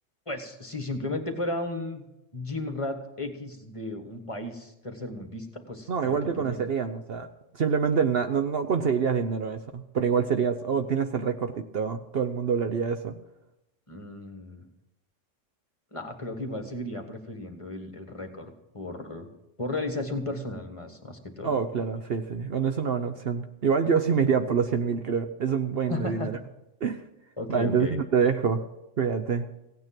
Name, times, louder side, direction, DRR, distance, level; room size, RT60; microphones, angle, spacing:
voice 1, 0.3-2.1 2.3-6.6 13.9-14.7 15.9-19.3 19.6-21.6 25.9-26.3 27.4-28.0, left 2 dB, 25° left, 5 dB, 1.6 m, -34 dB
voice 2, 5.9-7.3 7.5-13.2 21.4-26.4 26.8-27.0 27.5-28.7 29.0-29.5, right 6 dB, 55° right, 7 dB, 0.9 m, -26 dB
16.5 x 9.3 x 6.0 m, 0.88 s
omnidirectional pair, 1.3 m